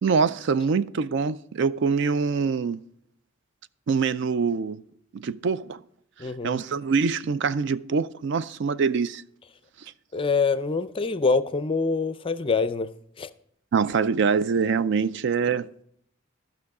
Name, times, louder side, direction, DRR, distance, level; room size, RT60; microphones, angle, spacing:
voice 1, 0.0-2.8 3.9-4.8 5.1-5.8 6.2-9.2 13.7-15.8, right 5 dB, 60° right, 0.4 m, -24 dB
voice 2, 6.2-6.6 10.1-12.9 13.2-13.3, left 4 dB, 25° left, 0.4 m, -25 dB
14.0 x 6.1 x 4.8 m
head